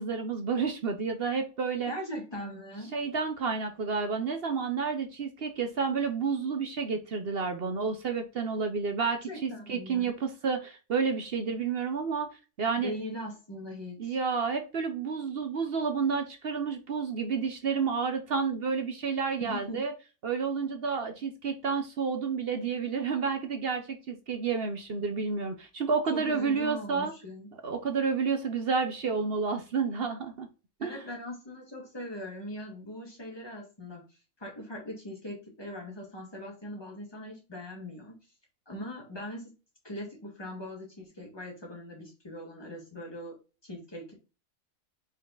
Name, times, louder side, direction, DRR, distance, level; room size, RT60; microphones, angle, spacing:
voice 1, 0.0-1.9 2.9-12.3 12.6-12.9 14.0-19.9 20.2-27.1 27.6-30.5 30.8-31.0, right 5 dB, 50° right, 6 dB, 0.8 m, -30 dB
voice 2, 1.9-2.9 9.0-10.1 12.8-14.2 19.4-19.8 26.1-27.5 30.8-34.0 34.4-38.2 38.7-39.5 39.8-43.4 43.6-44.1, equal, 15° left, -1 dB, 1.8 m, -40 dB
5.4 x 4.1 x 2.4 m, 0.31 s
omnidirectional pair, 1.6 m